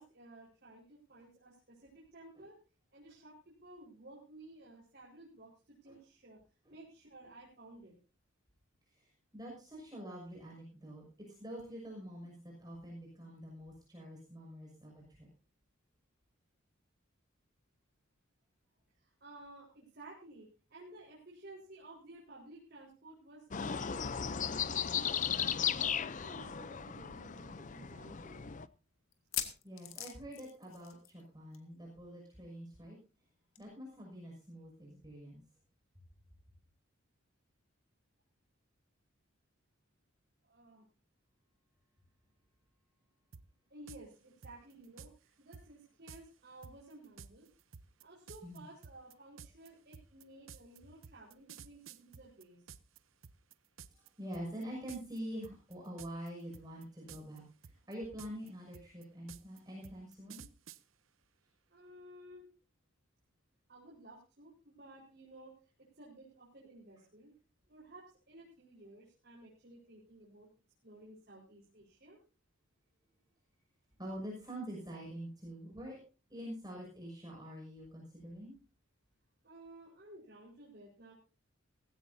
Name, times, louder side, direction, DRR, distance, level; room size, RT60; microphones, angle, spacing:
voice 1, 0.0-2.5 2.9-6.4 6.7-7.9 19.0-23.9 24.7-28.5 40.4-40.8 43.7-47.5 48.0-52.7 61.7-62.5 63.7-65.5 65.8-67.3 67.7-70.5 70.8-72.2 79.4-81.1, right 2 dB, 50° right, -4 dB, 4.7 m, -55 dB
voice 2, 8.9-15.3 29.6-33.0 33.6-35.4 48.4-48.6 54.0-60.5 74.0-76.0 76.3-78.5, equal, 20° right, -1 dB, 6.2 m, -46 dB
sound 1, 23.5-28.7, left 8 dB, 40° left, 0.6 m, -36 dB
sound 2, 26.5-26.6 26.9-27.0 27.6-27.7 29.1-31.3 31.5-31.7 32.0-32.1 33.6-33.7, left 11 dB, 85° left, 2.0 m, -41 dB
sound 3, 43.3-43.4 43.9-44.0 44.4-45.1 45.5-45.7 46.1-46.2 46.6-53.0 53.2-54.1 54.3-54.6 54.9-55.2 55.4-56.3 56.5-57.4 57.6-60.8, right 6 dB, 75° right, 0.8 m, -52 dB
18.0 x 16.0 x 2.7 m, 0.33 s
head